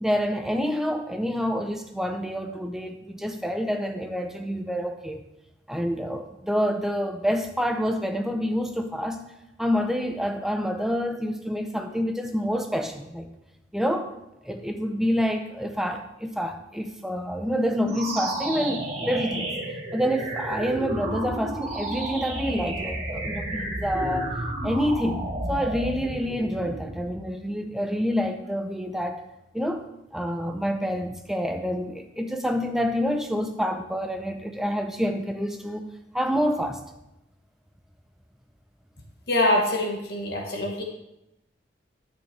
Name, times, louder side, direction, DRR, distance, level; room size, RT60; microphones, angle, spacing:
voice 1, 0.0-5.2 5.7-9.2 9.6-13.3 13.7-14.1 14.4-19.5 19.9-24.4 24.6-25.2 25.5-29.2 29.5-29.9 30.1-35.9 36.1-36.8, equal, ahead, 5 dB, 0.6 m, -27 dB
sound 1, 17.8-27.3, right 1 dB, 35° right, 2.0 m, -32 dB
voice 2, 39.3-40.8, left 1 dB, 55° left, 1 dB, 1.4 m, -24 dB
10.0 x 8.8 x 3.3 m, 0.88 s
head